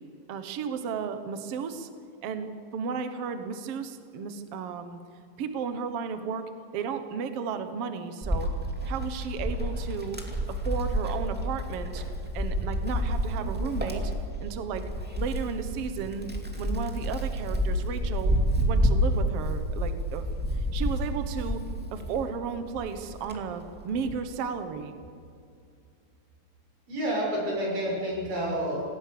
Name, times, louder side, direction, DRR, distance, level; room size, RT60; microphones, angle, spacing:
voice 1, 0.3-1.9 2.2-5.0 5.4-8.5 8.9-10.2 10.5-12.0 12.3-14.1 14.4-14.9 15.2-16.3 16.6-18.4 18.6-20.3 20.5-21.6 21.9-24.9, right 6 dB, 75° right, 8 dB, 1.4 m, -34 dB
Wind, 8.2-22.3 22.8-24.3, equal, 5° right, 1.2 m, -29 dB
voice 2, 26.9-28.8, right 1 dB, 55° right, -2 dB, 8.4 m, -29 dB
27.0 x 18.5 x 6.9 m, 2.4 s
omnidirectional pair, 4.6 m